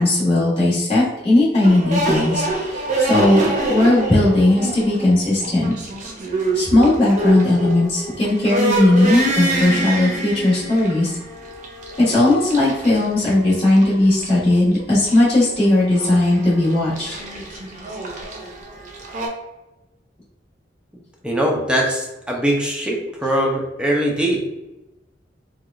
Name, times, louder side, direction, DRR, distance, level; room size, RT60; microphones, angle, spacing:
voice 1, 0.0-5.7 6.5-11.2 12.0-17.1, left 1 dB, 30° left, -9 dB, 1.4 m, -17 dB
sound 1, 1.6-19.3, right 2 dB, 45° right, 0.7 m, -26 dB
voice 2, 21.2-24.4, equal, 5° right, -1 dB, 0.5 m, -21 dB
4.6 x 2.3 x 2.5 m, 1.0 s
head